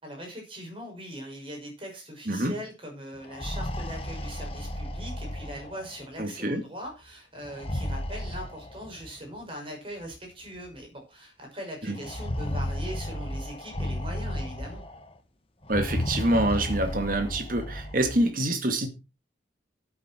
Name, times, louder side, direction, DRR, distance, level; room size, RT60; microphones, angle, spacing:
voice 1, 0.0-14.8, equal, 30° right, 6.1 m, -41 dB
voice 2, 2.3-2.6 6.2-6.6 11.8-12.0 15.7-18.9, right 1 dB, 45° right, 2.1 m, -26 dB
sound 1, 3.2-6.1 7.4-9.1 10.1-10.2 10.6-10.7 12.0-15.1 15.6-18.2, left 1 dB, 30° left, 1.4 m, -33 dB
13.5 x 8.6 x 4.5 m
head